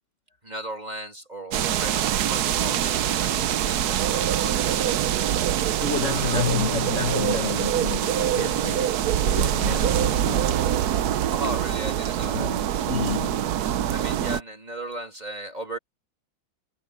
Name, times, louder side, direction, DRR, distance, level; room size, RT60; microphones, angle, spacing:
voice 1, 0.4-5.0 6.0-6.5 11.3-12.5 13.9-15.8, right 1 dB, 20° right, 3.1 m, -36 dB
sound 1, 1.5-14.4, right 10 dB, 65° right, 1.1 m, -24 dB
voice 2, 5.8-10.6 12.3-13.5, left 5 dB, 35° left, 2.0 m, -30 dB
omnidirectional pair, 2.2 m